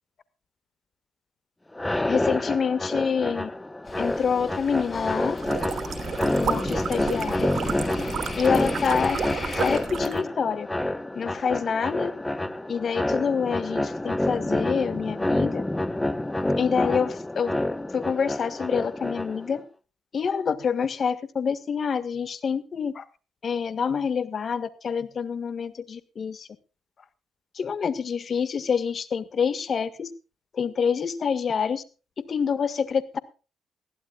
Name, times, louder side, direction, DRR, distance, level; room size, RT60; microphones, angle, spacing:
sound 1, 1.7-19.6, left 1 dB, 10° left, 1.0 m, -28 dB
voice 1, 2.1-3.5 4.0-5.4 6.4-7.5 8.4-9.2 9.5-10.7 11.1-12.1 12.7-15.6 16.4-17.5 17.9-19.6 20.1-23.0 23.4-26.5 27.5-30.1 30.5-31.8 32.2-33.2, left 6 dB, 45° left, 14 dB, 1.7 m, -27 dB
sound 2, 3.9-9.8, left 3 dB, 30° left, 4.7 m, -38 dB
sound 3, 5.4-10.2, right 6 dB, 55° right, 3.2 m, -31 dB
21.0 x 15.5 x 2.4 m, 0.33 s
cardioid pair, 90°, 0 cm